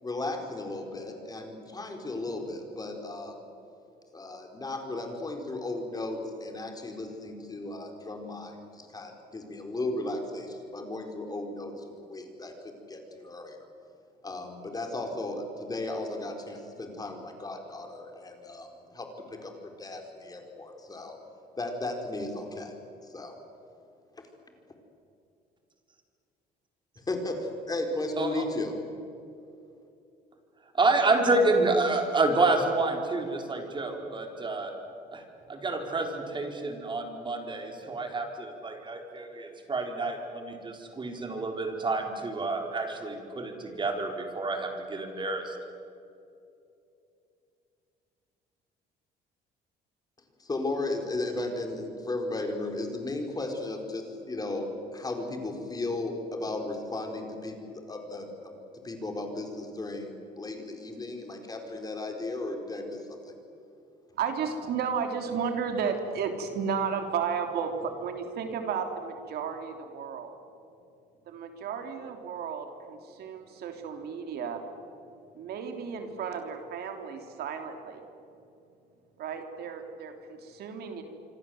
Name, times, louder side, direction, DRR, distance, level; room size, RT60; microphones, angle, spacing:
voice 1, 0.0-3.5 4.1-13.7 14.2-21.2 21.6-22.7 23.0-23.3 27.0-28.7 50.4-58.6 58.8-63.3, left 2 dB, 20° left, 4 dB, 4.4 m, -35 dB
voice 2, 30.8-34.7 35.1-35.2 35.5-45.6, right 2 dB, 30° right, 3 dB, 4.6 m, -28 dB
voice 3, 64.1-70.4 71.3-74.6 75.3-78.0 79.2-81.0, right 6 dB, 70° right, 5 dB, 3.3 m, -33 dB
26.5 x 25.5 x 7.9 m, 2.7 s
cardioid pair, 110°, 17 cm